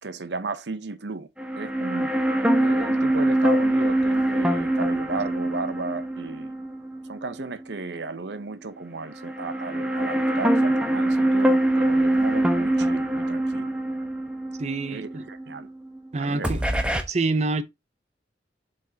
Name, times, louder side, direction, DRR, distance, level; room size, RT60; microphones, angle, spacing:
voice 1, 0.0-1.3 1.6-2.1 2.6-6.5 7.0-13.7 14.9-15.7 16.2-16.6, right 3 dB, 80° right, 0.8 m, -35 dB
sound 1, 1.4-7.6 8.0-8.1 9.1-16.1 16.4-17.0, right 1 dB, 5° right, 0.9 m, -24 dB
voice 2, 14.6-15.2 16.1-16.6 17.1-17.6, right 3 dB, 40° right, 0.6 m, -26 dB
7.5 x 5.3 x 2.7 m
head